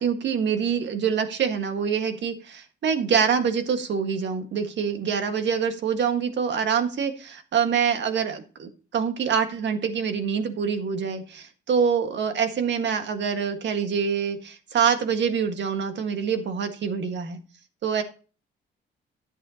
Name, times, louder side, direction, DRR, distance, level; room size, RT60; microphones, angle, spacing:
voice 1, 0.0-17.4 17.8-18.0, right 6 dB, 65° right, 7 dB, 1.7 m, -25 dB
11.0 x 8.5 x 2.9 m, 0.36 s
cardioid pair, 90°, 20 cm